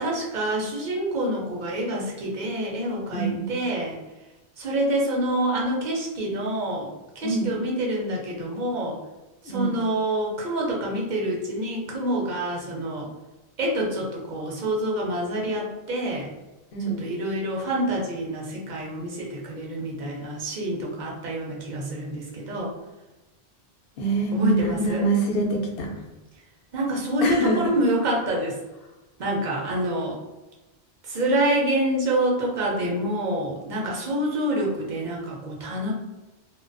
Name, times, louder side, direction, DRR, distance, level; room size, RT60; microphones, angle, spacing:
voice 1, 0.0-4.0 4.6-6.9 7.2-9.0 9.5-13.1 13.6-16.3 17.0-22.7 24.3-25.1 26.7-28.6 29.2-30.2 31.1-35.9, right 1 dB, 50° right, -2 dB, 0.7 m, -27 dB
voice 2, 3.1-3.6 7.2-7.5 9.4-9.7 16.7-17.1 24.0-25.9 27.2-27.8, right 2 dB, 65° left, -2 dB, 0.7 m, -25 dB
2.3 x 2.2 x 2.5 m, 1.1 s
omnidirectional pair, 1.1 m